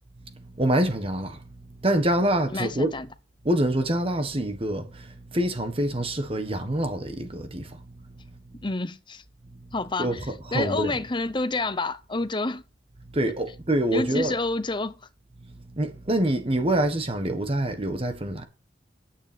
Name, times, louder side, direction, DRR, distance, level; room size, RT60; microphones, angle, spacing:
voice 1, 0.3-1.4 1.8-2.9 3.4-7.8 10.0-11.0 13.1-14.4 15.7-18.5, right 1 dB, 30° right, 1.5 m, -26 dB
voice 2, 2.5-3.1 8.6-9.2 9.7-10.3 10.5-12.6 13.9-14.9, left 2 dB, 25° left, 0.9 m, -28 dB
10.0 x 8.9 x 5.1 m
head